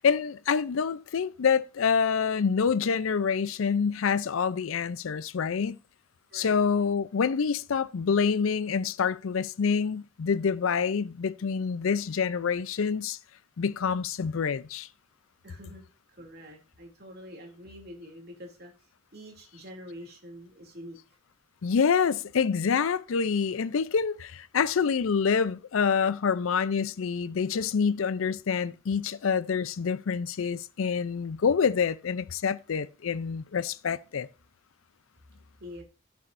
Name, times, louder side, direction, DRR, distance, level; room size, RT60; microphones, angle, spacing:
voice 1, 0.0-5.8 6.3-13.2 13.6-14.9 21.6-34.3, left 6 dB, 75° left, 0.5 m, -27 dB
voice 2, 15.4-15.8 16.2-18.7 19.1-21.0 35.6-35.8, equal, 50° right, 2.6 m, -45 dB
15.5 x 7.0 x 2.6 m
head